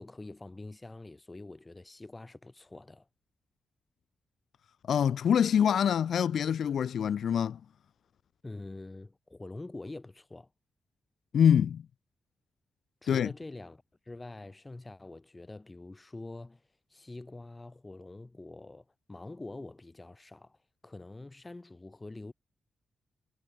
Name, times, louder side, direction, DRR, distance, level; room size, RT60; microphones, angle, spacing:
voice 1, 0.0-3.1 8.4-10.5 13.0-16.6 16.9-20.6 20.8-22.3, left 2 dB, 25° left, 3.8 m, -45 dB
voice 2, 4.9-7.6 11.3-11.8 13.1-13.3, left 8 dB, 80° left, 0.6 m, -25 dB
cardioid pair, 60°, 0 cm